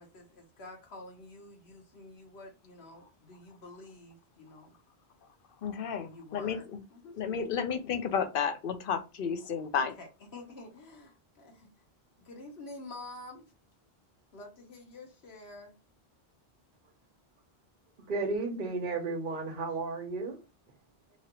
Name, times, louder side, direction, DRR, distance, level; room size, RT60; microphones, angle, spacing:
voice 1, 0.0-4.7 6.1-6.6 6.9-7.2 10.0-11.7 12.2-13.4 14.3-15.7, left 2 dB, 85° left, 1.3 m, -48 dB
voice 2, 5.6-6.8 7.2-9.9, left 7 dB, 65° left, 0.8 m, -32 dB
voice 3, 18.1-20.4, right 3 dB, 55° right, 0.9 m, -33 dB
3.0 x 2.5 x 2.9 m
omnidirectional pair, 1.0 m